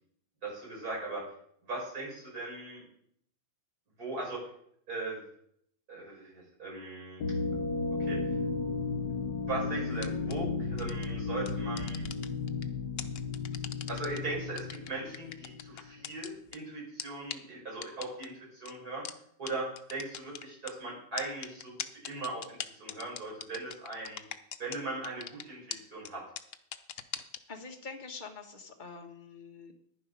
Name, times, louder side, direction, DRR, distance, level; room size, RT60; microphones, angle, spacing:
voice 1, 0.4-1.2 1.6-2.8 4.0-4.4 4.9-5.2 5.9-7.2 8.0-8.2 9.5-12.0 13.9-19.1 19.4-21.8 22.0-24.2 24.6-26.2, right 2 dB, 45° right, -3 dB, 5.6 m, -39 dB
sound 1, 7.2-15.9, left 4 dB, 60° left, 1.7 m, -34 dB
sound 2, 10.0-10.3 10.8-11.0 11.4-12.6 13.0-14.2 14.6-16.6 17.0-17.1 17.3-17.4 17.8-18.3 18.6-18.7 19.0-19.1 19.5-19.6 19.8-20.7 21.2-24.8 25.0-25.4 25.7-25.8 26.0-26.1 26.4-27.4, left 9 dB, 80° left, 0.6 m, -39 dB
voice 2, 27.5-29.7, left 4 dB, 25° left, 3 dB, 1.3 m, -45 dB
10.5 x 10.0 x 5.3 m, 0.67 s
omnidirectional pair, 2.2 m